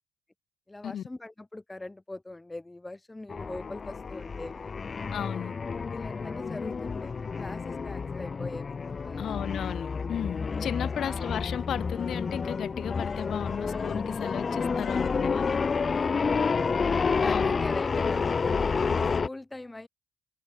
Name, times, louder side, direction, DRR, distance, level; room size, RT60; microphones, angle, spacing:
voice 1, 0.7-4.7 5.9-9.4 10.6-11.3 15.6-16.4 16.8-19.9, left 2 dB, 15° left, 7.9 m, -42 dB
sound 1, 3.3-19.3, left 5 dB, 40° left, 1.2 m, -29 dB
voice 2, 5.1-5.5 9.2-15.6 17.2-17.6, left 9 dB, 65° left, 1.6 m, -35 dB
supercardioid pair, 55°, 0 cm